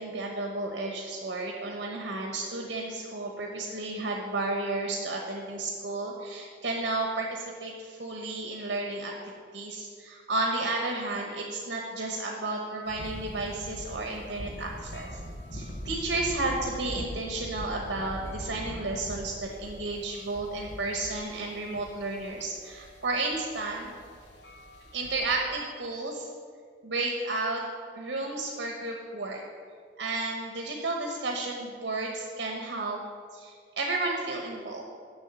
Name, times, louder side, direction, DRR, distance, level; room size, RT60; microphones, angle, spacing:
voice 1, 0.0-9.1 9.5-15.2 15.5-23.9 24.9-26.3 26.8-27.6 28.0-29.4 30.0-33.0 33.3-34.8, right 2 dB, 80° right, 0 dB, 1.0 m, -32 dB
sound 1, 12.9-25.4, equal, 80° left, 1.2 m, -42 dB
7.1 x 6.4 x 7.8 m, 2.1 s
head